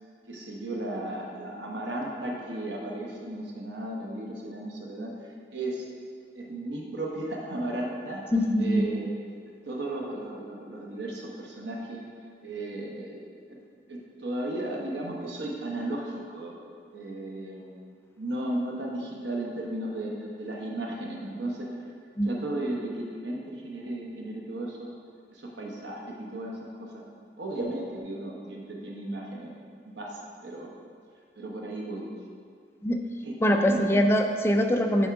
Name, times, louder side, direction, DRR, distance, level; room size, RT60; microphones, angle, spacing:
voice 1, 0.3-5.9 6.4-8.2 8.6-9.1 9.7-12.0 12.4-13.2 13.9-16.6 16.9-17.7 18.2-21.9 22.2-24.9 25.3-27.0 27.4-29.5 29.8-30.7 31.4-32.1 33.2-33.8, right 1 dB, 80° right, -2 dB, 1.0 m, -35 dB
voice 2, 8.3-8.9 22.2-22.3 32.8-33.0 33.4-35.1, equal, 15° left, 4 dB, 0.3 m, -23 dB
7.0 x 3.6 x 4.7 m, 2.1 s
head